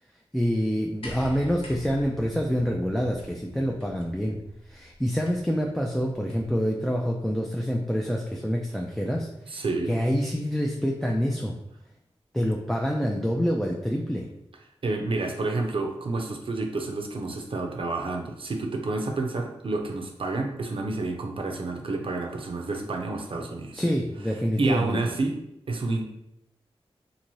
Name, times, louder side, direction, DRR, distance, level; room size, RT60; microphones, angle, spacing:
voice 1, 0.3-4.4 4.7-11.5 12.3-14.3 23.7-25.0, equal, 5° left, -1 dB, 0.4 m, -27 dB
sound 1, 1.0-6.6 7.7-7.8, left 1 dB, 60° left, 0.8 m, -45 dB
voice 2, 9.5-9.9 14.8-23.8 24.6-25.4 25.7-26.0, right 3 dB, 55° right, 2 dB, 0.6 m, -29 dB
2.6 x 2.6 x 3.0 m, 0.82 s
cardioid pair, 45°, 11 cm